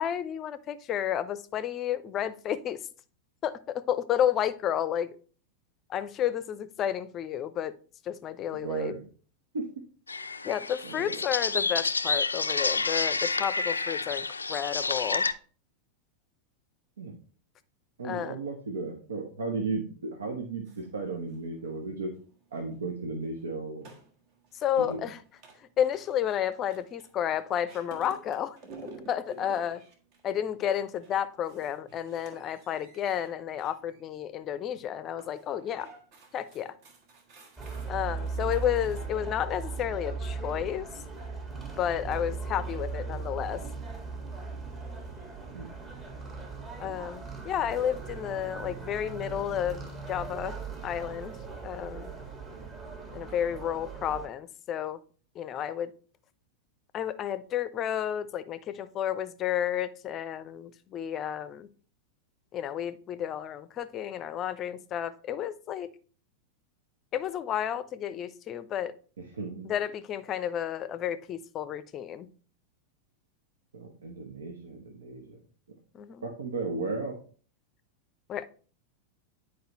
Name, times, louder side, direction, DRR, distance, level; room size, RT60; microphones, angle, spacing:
voice 1, 0.0-2.8 3.4-5.2 5.9-7.7 8.1-8.9 10.4-15.3 18.0-18.4 24.6-25.2 25.8-28.6 29.1-29.8 30.2-35.9 36.3-36.7 37.9-40.9 41.8-43.6 46.8-50.6 50.8-51.4 51.6-52.1 53.1-55.0 55.4-55.9 56.9-61.7 62.5-65.9 67.1-68.9 69.6-72.3 75.9-76.2 78.3-78.5, left 10 dB, 30° left, 0.6 m, -31 dB
voice 2, 8.5-9.1 9.5-9.9 10.8-11.2 17.0-17.1 18.0-22.1 22.5-23.9 24.8-25.0 45.5-45.7 69.2-69.7 73.7-75.4 76.2-77.2, right 3 dB, 70° right, 1.0 m, -35 dB
sound 1, 10.1-15.3, left 4 dB, 80° left, 0.4 m, -29 dB
sound 2, 20.7-39.1, right 3 dB, 45° right, 1.5 m, -54 dB
sound 3, 37.6-54.3, right 4 dB, 25° right, 1.9 m, -38 dB
10.0 x 4.8 x 3.0 m
figure-of-eight pair, 90°, 0 cm